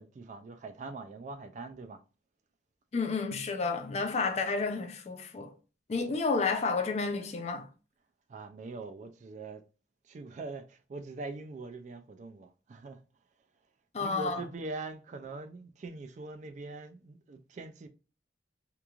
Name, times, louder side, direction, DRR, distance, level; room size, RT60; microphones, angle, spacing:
voice 1, 0.0-2.0 8.3-9.6 10.0-13.0 14.0-17.9, right 3 dB, 40° right, 0.3 m, -42 dB
voice 2, 2.9-5.5 5.9-7.7 13.9-14.4, left 4 dB, 40° left, 0.4 m, -31 dB
2.9 x 2.3 x 2.3 m
head